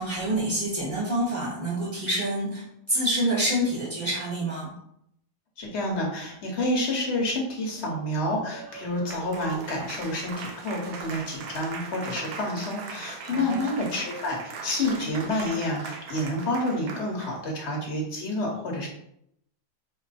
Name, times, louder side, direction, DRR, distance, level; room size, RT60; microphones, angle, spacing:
voice 1, 0.0-4.7 13.2-13.6, right 1 dB, 20° left, -6 dB, 1.2 m, -27 dB
voice 2, 5.6-18.9, left 1 dB, 45° left, -1 dB, 1.3 m, -29 dB
Applause, 8.3-17.5, right 4 dB, 70° right, 1.0 m, -40 dB
4.7 x 2.1 x 4.1 m, 0.73 s
omnidirectional pair, 1.7 m